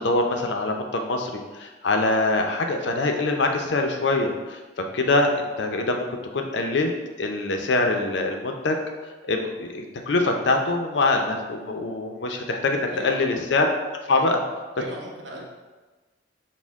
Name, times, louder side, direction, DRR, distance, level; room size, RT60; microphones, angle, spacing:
voice 1, 0.0-6.1 6.3-6.9 7.2-8.8 9.2-13.7 14.1-14.4, left 2 dB, 70° left, 4 dB, 0.5 m, -24 dB
voice 2, 12.9-13.3 14.1-14.3 14.8-15.5, right 1 dB, 85° right, -1 dB, 0.9 m, -36 dB
6.3 x 2.1 x 3.5 m, 1.3 s
head